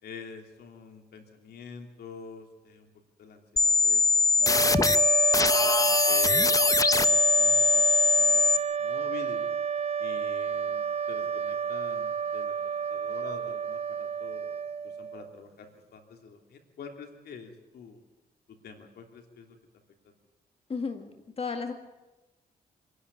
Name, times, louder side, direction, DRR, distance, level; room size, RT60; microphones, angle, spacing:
voice 1, 0.0-2.9 3.2-4.0 4.3-5.1 5.6-6.6 6.9-9.5 10.0-14.5 14.8-18.0 18.5-19.6 20.0-20.1, left 5 dB, 80° left, 4 dB, 3.1 m, -47 dB
sound 1, 3.6-8.6, left 4 dB, 20° left, 0.9 m, -22 dB
sound 2, 4.4-15.4, right 6 dB, 40° right, 0.6 m, -30 dB
voice 2, 20.7-21.1 21.4-21.7, left 5 dB, 40° left, 5 dB, 1.9 m, -32 dB
26.0 x 11.5 x 9.9 m, 1.1 s
cardioid pair, 85°, 16 cm